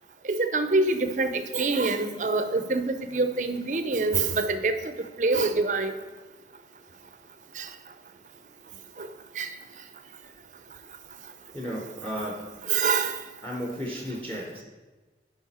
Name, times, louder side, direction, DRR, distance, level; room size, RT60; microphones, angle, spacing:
voice 1, 0.3-4.9 5.2-5.9 7.6-7.7 9.0-9.1 9.4-9.5 12.7-13.2, right 3 dB, 45° right, 9 dB, 0.6 m, -25 dB
voice 2, 11.5-12.4 13.4-14.6, equal, 10° left, -1 dB, 0.9 m, -34 dB
8.4 x 5.2 x 4.2 m, 1.3 s
head